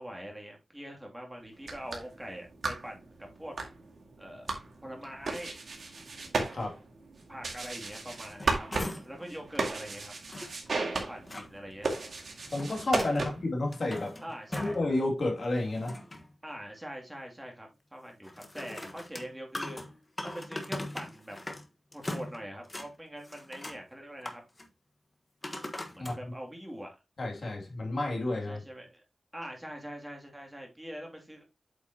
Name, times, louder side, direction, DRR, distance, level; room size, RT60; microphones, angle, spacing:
voice 1, 0.0-3.5 4.2-5.5 7.3-10.1 11.1-12.0 13.1-13.3 14.2-14.7 16.4-19.8 20.2-21.4 21.9-24.4 25.9-26.9 28.5-29.0 29.3-31.4, equal, 10° right, 2.5 m, -43 dB
sound 1, 1.5-13.6, right 3 dB, 75° right, 2.0 m, -36 dB
sound 2, 8.3-9.2 9.5-9.6 10.3-11.5 12.2-13.2 13.6-14.9 15.3-16.3 18.2-21.7 21.9-22.9 23.2-23.8 24.2-24.7 25.4-26.2 26.8-26.9, left 1 dB, 25° left, 1.3 m, -41 dB
voice 2, 12.5-14.2 14.6-16.0 26.0-26.3 27.2-28.6, left 2 dB, 65° left, 2.4 m, -31 dB
8.3 x 5.8 x 2.8 m
wide cardioid pair, 90°, 0 cm